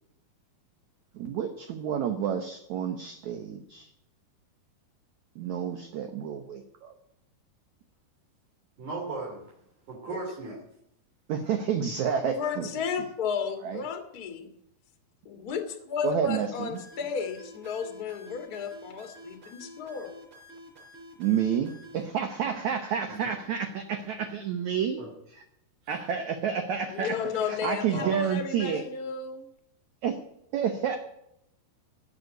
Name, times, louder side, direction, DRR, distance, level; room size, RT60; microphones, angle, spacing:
voice 1, 1.1-3.9 5.3-6.9 11.3-12.7 13.6-13.8 16.0-16.7 21.2-25.0 25.3-25.4 25.9-28.9 30.0-30.2 30.5-31.0, right 8 dB, 75° right, 6 dB, 1.7 m, -30 dB
voice 2, 8.8-9.4 9.9-10.6 23.1-23.2 25.0-25.1 25.8-26.0 27.9-28.2, right 3 dB, 50° right, -3 dB, 4.1 m, -36 dB
voice 3, 12.4-14.5 15.2-20.1 26.9-29.5, left 6 dB, 45° left, 5 dB, 1.2 m, -33 dB
sound 1, 16.7-22.0, equal, 30° right, 5.5 m, -49 dB
16.5 x 6.9 x 9.1 m, 0.79 s
omnidirectional pair, 4.8 m